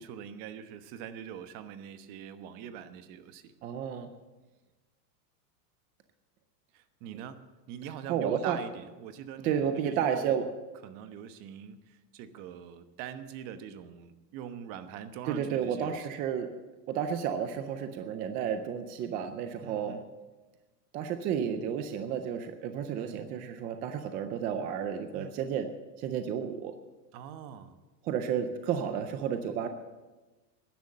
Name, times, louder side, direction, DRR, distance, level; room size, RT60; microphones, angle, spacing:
voice 1, 0.0-3.5 6.7-7.4 7.7-10.5 10.8-16.2 19.6-20.1 22.9-23.2 25.1-25.6 27.1-27.8, right 9 dB, 45° right, 10 dB, 1.2 m, -43 dB
voice 2, 3.6-4.1 8.1-8.6 9.4-10.5 15.3-16.5 16.9-19.9 20.9-25.7 26.0-26.7 28.0-29.7, right 8 dB, 20° right, 8 dB, 0.3 m, -31 dB
12.5 x 10.5 x 7.5 m, 1.2 s
supercardioid pair, 140°, 49 cm